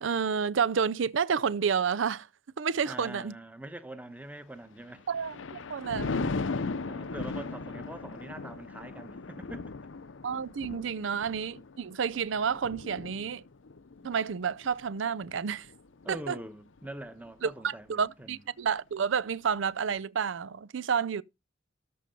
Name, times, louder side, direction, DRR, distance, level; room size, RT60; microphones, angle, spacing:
voice 1, 0.0-2.3 2.6-3.3 5.1-6.3 10.2-13.4 14.0-15.7 16.1-16.4 17.4-21.2, right 6 dB, 80° right, 0.5 m, -30 dB
voice 2, 2.8-5.0 6.8-9.7 16.0-18.4, right 1 dB, 10° right, 1.1 m, -43 dB
Thunder, 4.8-16.3 16.8-17.1, left 3 dB, 85° left, 0.7 m, -38 dB
13.5 x 5.4 x 5.3 m
head